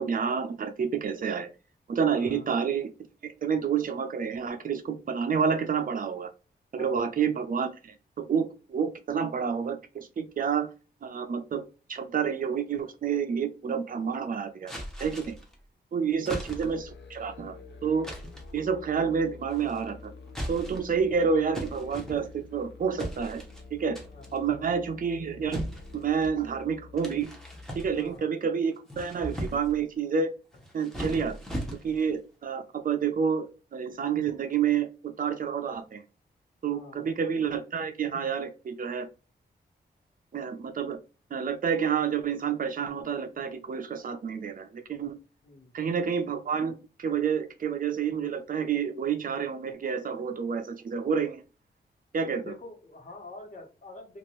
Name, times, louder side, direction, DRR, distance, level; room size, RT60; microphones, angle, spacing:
voice 1, 0.0-1.5 1.9-2.9 3.2-6.3 6.7-10.7 11.0-11.6 11.9-14.7 15.0-15.4 15.9-17.6 17.8-18.1 18.5-20.1 20.5-23.4 23.7-24.0 24.3-25.7 25.9-27.3 27.8-30.3 30.7-36.0 36.6-39.1 40.3-41.0 41.3-45.2 45.7-51.4 52.1-52.5, right 6 dB, 50° right, 7 dB, 0.6 m, -29 dB
voice 2, 2.1-2.5 6.8-7.3 16.0-16.4 24.1-24.7 27.9-28.3 36.7-37.1 45.4-45.7 52.4-54.2, left 2 dB, 45° left, 1 dB, 1.3 m, -47 dB
sound 1, 14.7-15.5 16.3-16.9 18.0-18.5 19.5-19.9 20.3-21.0 21.5-22.5 23.0-23.6 24.0-24.4 25.5-26.4 27.0-28.2 28.7-29.8 30.5-32.1, equal, 5° left, 0.9 m, -38 dB
Musical instrument, 16.4-28.0, left 4 dB, 80° left, 0.8 m, -48 dB
2.9 x 2.6 x 3.0 m, 0.32 s
wide cardioid pair, 125°, 18 cm